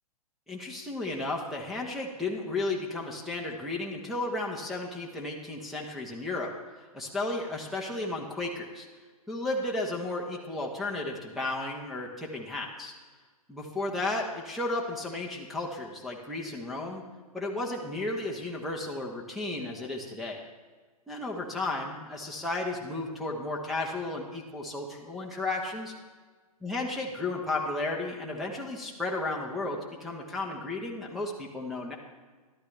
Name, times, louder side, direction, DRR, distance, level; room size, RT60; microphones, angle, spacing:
voice 1, 0.5-8.9 9.3-12.9 13.5-17.0 17.3-20.4 21.1-25.9 26.6-32.0, left 2 dB, ahead, -4 dB, 1.1 m, -33 dB
13.0 x 12.0 x 3.3 m, 1.4 s
hypercardioid pair, 125°, 19 cm